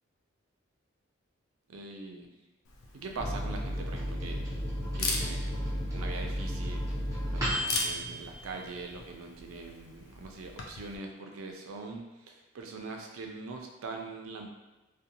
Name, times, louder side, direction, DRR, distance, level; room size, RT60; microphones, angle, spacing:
voice 1, 1.7-2.3 2.9-4.6 4.9-6.9 7.3-14.5, right 3 dB, 80° right, 2 dB, 0.4 m, -42 dB
Camera, 2.6-11.0, left 3 dB, 80° left, 0.4 m, -40 dB
Microwave oven, 3.2-9.3 9.7-9.8 10.0-10.6, equal, 15° right, 0.6 m, -34 dB
2.6 x 2.1 x 2.7 m, 1.1 s
head